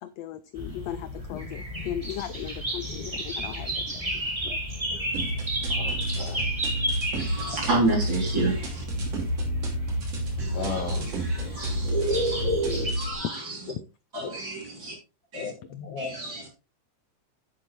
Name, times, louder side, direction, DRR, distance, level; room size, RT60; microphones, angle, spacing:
voice 1, 0.0-4.6, left 11 dB, 80° left, 1.5 m, -37 dB
sound 1, 0.6-12.9, right 1 dB, 15° right, 1.7 m, -32 dB
sound 2, 5.1-13.1, right 1 dB, 55° right, 3.8 m, -30 dB
voice 2, 5.7-6.5 10.5-11.1 14.1-14.5 15.3-16.2, left 5 dB, 55° left, 2.1 m, -36 dB
voice 3, 7.2-8.8 10.4-13.7 14.1-15.0 15.3-15.5 16.0-16.5, right 2 dB, 35° right, 3.7 m, -31 dB
10.5 x 8.3 x 3.2 m
omnidirectional pair, 3.6 m